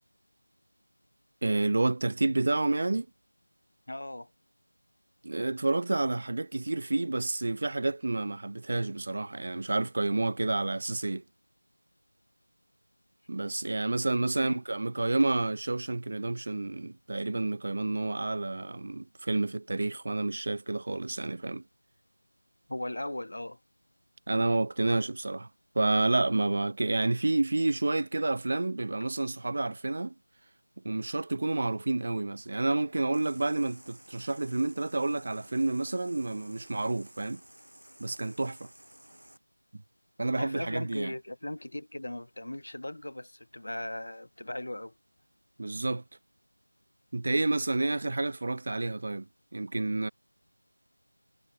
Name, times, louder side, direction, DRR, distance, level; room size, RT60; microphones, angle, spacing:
voice 1, 1.4-3.1 5.2-11.2 13.3-21.6 24.3-25.5 25.7-30.1 30.8-37.4 38.0-38.7 39.7-39.8 40.2-41.1 45.6-46.0 47.1-50.1, right 2 dB, 40° right, 0.8 m, -29 dB
voice 2, 3.9-4.3 14.2-14.6 22.7-23.6 40.4-44.9, left 1 dB, 60° left, 0.6 m, -38 dB
sound 1, 32.8-39.4, right 1 dB, 90° right, 7.8 m, -55 dB
figure-of-eight pair, 175°, 0 cm